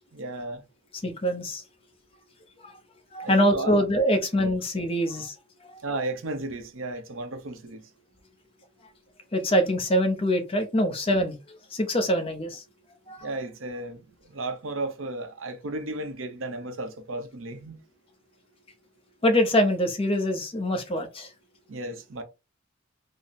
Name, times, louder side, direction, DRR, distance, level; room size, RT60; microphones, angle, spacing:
voice 1, 0.1-0.6 3.2-3.8 5.8-7.8 13.2-17.8 21.7-22.2, right 2 dB, 80° right, 0.7 m, -34 dB
voice 2, 1.0-1.6 2.6-2.8 3.1-5.3 5.6-5.7 9.3-12.6 13.1-13.3 19.2-21.3, equal, 30° left, 0.6 m, -24 dB
3.7 x 2.0 x 4.0 m
head